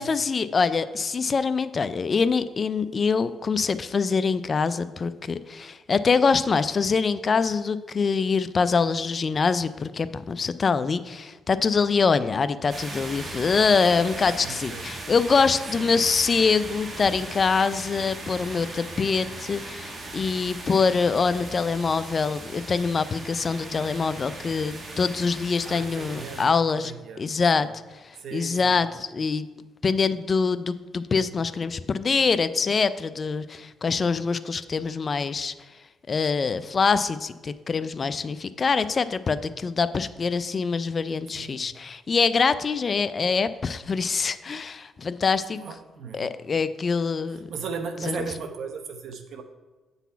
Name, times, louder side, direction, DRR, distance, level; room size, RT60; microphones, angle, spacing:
voice 1, 0.0-26.9 27.2-27.7 28.0-29.5 29.8-35.5 36.1-45.6 46.1-47.5 48.0-48.3, left 5 dB, 40° left, 14 dB, 0.3 m, -24 dB
sound 1, 12.7-26.5, right 2 dB, 35° right, 1.4 m, -38 dB
voice 2, 14.4-14.8 15.8-15.9 18.3-18.5 25.6-26.5 26.8-27.7 28.1-28.8 41.3-41.6 45.5-46.3 47.3-49.4, right 5 dB, 65° right, 6 dB, 0.9 m, -37 dB
8.1 x 4.0 x 5.6 m, 1.2 s
cardioid pair, 90°, 0 cm